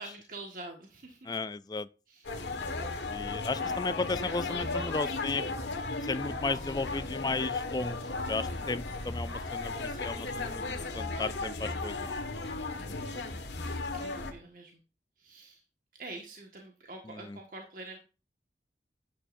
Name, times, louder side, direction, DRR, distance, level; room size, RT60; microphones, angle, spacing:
voice 1, 0.0-1.4 2.1-2.3 2.9-3.0 3.4-3.6 9.0-9.2 12.8-13.1 13.9-14.8 15.2-15.6 15.9-18.0, right 2 dB, 50° right, 1.6 m, -46 dB
voice 2, 1.3-1.9 3.1-5.4 6.0-8.0 8.3-12.2 17.3-17.4, left 3 dB, 25° left, 0.4 m, -34 dB
sound 1, 2.2-14.3, left 3 dB, 85° left, 1.7 m, -35 dB
11.5 x 10.0 x 2.6 m
head